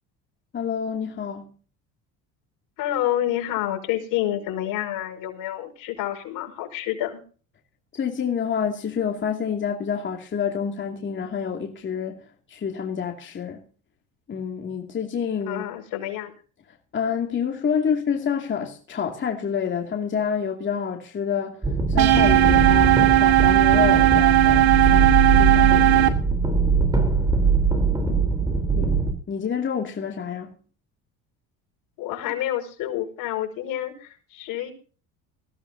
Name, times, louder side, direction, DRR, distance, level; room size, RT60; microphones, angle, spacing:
voice 1, 0.5-1.5 7.9-13.6 14.3-15.6 16.9-26.1 28.7-30.5, left 7 dB, 35° left, 2.4 m, -28 dB
voice 2, 2.8-7.2 15.5-16.3 28.1-28.3 28.6-28.7 32.0-34.7, left 12 dB, 70° left, 5.3 m, -28 dB
sound 1, 21.6-29.1, right 4 dB, 10° right, 3.6 m, -21 dB
sound 2, 22.0-26.1, right 15 dB, 70° right, 2.5 m, -17 dB
20.0 x 16.0 x 2.7 m
cardioid pair, 115°, 35 cm